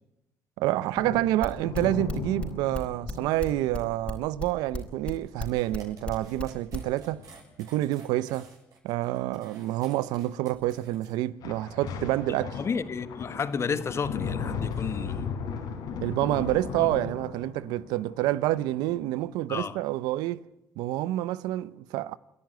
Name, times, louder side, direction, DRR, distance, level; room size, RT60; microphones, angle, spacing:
voice 1, 0.6-7.2 7.6-8.5 8.8-12.6 16.0-20.4 20.8-22.2, right 15 dB, 85° right, 0.6 m, -28 dB
sound 1, 0.9-5.2 5.5-5.7 6.1-6.3 7.0-7.4 11.4-19.4, left 6 dB, 75° left, 4.3 m, -37 dB
sound 2, 1.4-6.9, left 2 dB, 15° left, 4.2 m, -34 dB
sound 3, 5.4-11.1, right 4 dB, 60° right, 7.9 m, -53 dB
voice 2, 12.6-15.3 19.5-19.8, left 5 dB, 40° left, 1.4 m, -31 dB
28.5 x 11.0 x 9.4 m
supercardioid pair, 80°, 7 cm